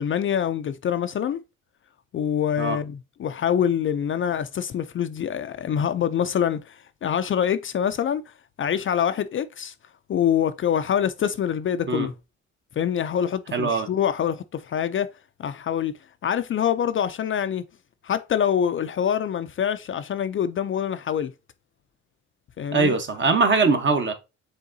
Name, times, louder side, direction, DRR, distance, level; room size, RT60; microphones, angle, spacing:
voice 1, 0.0-1.4 2.1-9.7 10.1-12.1 12.8-15.1 15.4-15.9 16.2-17.6 18.0-21.3 22.6-22.9, left 9 dB, 45° left, 0.4 m, -25 dB
voice 2, 13.5-13.9 22.7-24.1, right 4 dB, 40° right, 1.0 m, -21 dB
5.5 x 3.6 x 2.6 m
cardioid pair, 90°, 30 cm